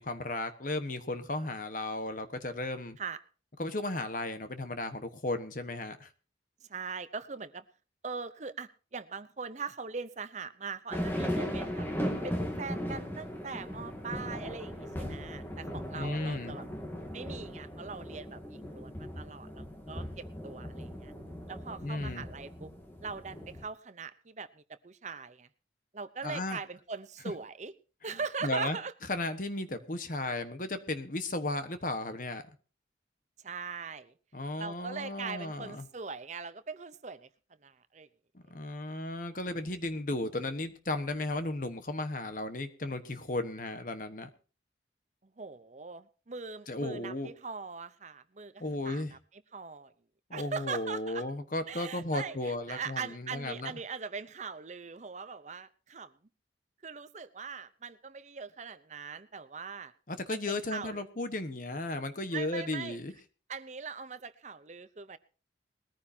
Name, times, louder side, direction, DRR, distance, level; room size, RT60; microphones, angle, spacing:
voice 1, 0.0-3.0 3.6-6.1 15.9-16.5 21.8-22.2 26.2-26.6 28.1-28.8 29.1-32.4 34.3-35.9 38.5-44.3 46.7-47.3 48.6-49.1 50.3-53.7 60.1-63.1, left 2 dB, 45° left, 9 dB, 1.2 m, -35 dB
voice 2, 6.7-7.6 8.0-11.9 12.2-16.7 17.1-21.1 21.5-22.7 23.0-25.5 25.9-27.7 28.0-28.9 33.4-34.1 34.6-37.3 37.6-38.1 45.4-49.2 49.5-49.9 50.3-51.3 51.7-56.1 56.8-59.9 60.3-61.0 62.3-63.0 63.5-65.2, right 5 dB, 40° right, 13 dB, 0.7 m, -41 dB
sound 1, 10.9-23.6, equal, 10° left, 2.1 m, -38 dB
20.5 x 14.5 x 2.8 m, 0.36 s
head